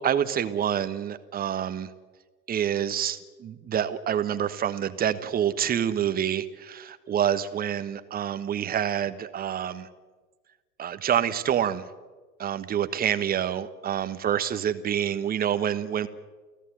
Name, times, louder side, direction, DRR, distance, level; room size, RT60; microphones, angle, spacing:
voice 1, 0.0-1.9 2.5-9.9 10.8-11.9 12.4-16.1, right 9 dB, 20° right, 12 dB, 1.2 m, -27 dB
29.0 x 17.0 x 8.0 m, 1.3 s
figure-of-eight pair, 90°, 48 cm